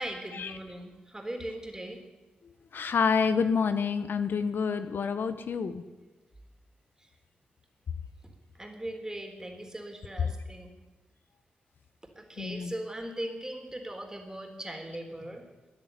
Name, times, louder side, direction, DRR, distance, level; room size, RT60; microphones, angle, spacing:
voice 1, 0.0-2.0 8.5-10.7 12.2-15.4, right 1 dB, 15° right, 4 dB, 3.8 m, -39 dB
voice 2, 2.4-5.8 12.4-12.7, left 5 dB, 70° left, 11 dB, 1.0 m, -28 dB
14.5 x 9.7 x 9.4 m, 1.2 s
cardioid pair, 50°, 4 cm